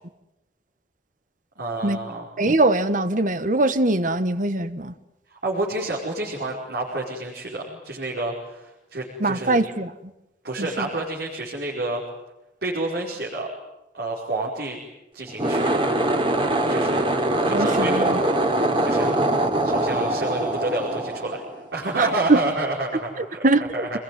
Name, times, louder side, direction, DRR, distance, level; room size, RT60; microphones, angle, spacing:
voice 1, 1.6-2.3 5.3-9.6 10.4-12.0 12.6-13.5 13.9-14.8 15.1-15.7 16.7-17.1 17.5-19.2 19.6-21.4 21.7-23.5 23.7-24.0, right 2 dB, 65° right, -3 dB, 5.1 m, -29 dB
voice 2, 2.4-4.9 9.2-9.9 10.6-10.9 17.5-18.2 22.0-22.4 23.2-24.0, right 2 dB, 45° right, 12 dB, 1.3 m, -22 dB
sound 1, 15.3-21.8, right 1 dB, 30° right, 3.1 m, -23 dB
26.5 x 21.5 x 9.6 m, 0.93 s
head